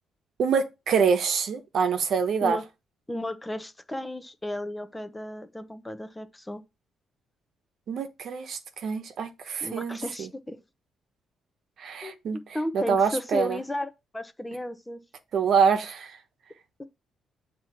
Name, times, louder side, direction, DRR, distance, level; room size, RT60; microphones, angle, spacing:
voice 1, 0.4-2.6 7.9-10.3 11.8-13.6 15.3-16.2, right 6 dB, 65° right, 1.0 m, -26 dB
voice 2, 3.1-6.6 9.6-10.6 12.0-15.0 16.8-16.9, left 1 dB, 10° left, 0.9 m, -34 dB
7.4 x 3.0 x 5.7 m
cardioid pair, 90°, 0 cm